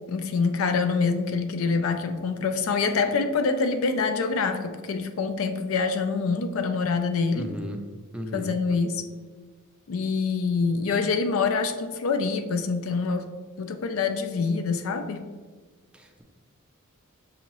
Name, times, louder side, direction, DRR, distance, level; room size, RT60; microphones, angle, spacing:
voice 1, 0.1-7.5 8.3-9.0 9.9-13.3 13.6-15.2, left 4 dB, 75° left, 7 dB, 0.4 m, -25 dB
voice 2, 7.3-7.8 8.1-8.6 15.9-16.2, equal, 5° right, 3 dB, 0.4 m, -35 dB
6.2 x 2.8 x 2.9 m, 1.4 s
head